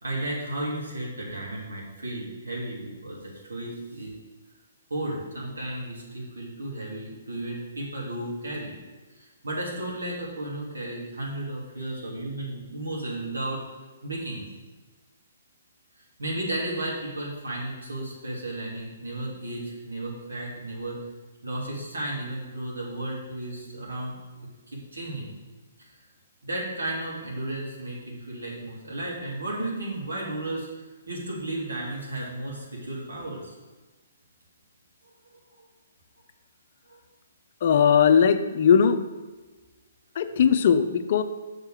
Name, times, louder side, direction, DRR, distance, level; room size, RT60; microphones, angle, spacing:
voice 1, 0.0-4.1 4.9-8.8 9.1-13.6 14.0-14.5 16.0-21.0 21.4-24.1 24.7-25.3 25.8-25.9 26.4-33.5 35.3-35.7 36.9-37.0, right 1 dB, 90° right, -4 dB, 2.8 m, -34 dB
voice 2, 37.6-39.0 40.2-41.2, left 7 dB, 50° left, 10 dB, 0.5 m, -19 dB
6.5 x 4.6 x 6.4 m, 1.2 s
hypercardioid pair, 140°, 0 cm